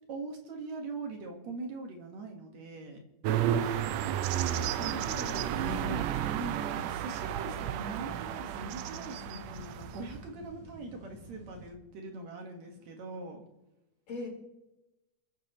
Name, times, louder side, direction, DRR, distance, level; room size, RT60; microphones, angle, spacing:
voice 1, 0.1-3.0 4.8-5.1 5.9-13.4, right 3 dB, 60° right, 3 dB, 2.7 m, -41 dB
sound 1, 3.2-10.2, right 10 dB, 90° right, 1.5 m, -32 dB
voice 2, 4.5-6.0 14.1-14.3, left 3 dB, 80° left, -3 dB, 5.6 m, -41 dB
sound 2, 6.7-11.7, equal, 10° right, 2.9 m, -50 dB
28.5 x 9.5 x 3.1 m, 0.98 s
omnidirectional pair, 3.8 m